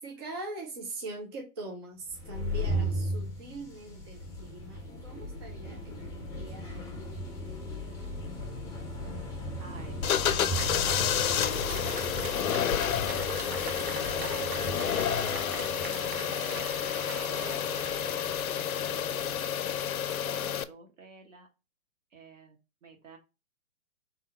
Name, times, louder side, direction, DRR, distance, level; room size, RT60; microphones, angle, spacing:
voice 1, 0.0-6.0 6.4-7.1, right 2 dB, 20° right, 0.4 m, -42 dB
sound 1, 2.1-19.5, equal, 5° left, 0.8 m, -37 dB
voice 2, 9.6-10.2 11.3-13.0 13.4-16.3 16.7-17.7 18.0-21.5 22.1-23.2, right 4 dB, 55° right, 1.7 m, -51 dB
sound 2, 10.0-20.6, left 9 dB, 70° left, 0.6 m, -30 dB
Applause, 10.3-19.6, right 5 dB, 40° right, 0.8 m, -42 dB
3.9 x 2.8 x 4.1 m
figure-of-eight pair, 130°, 44 cm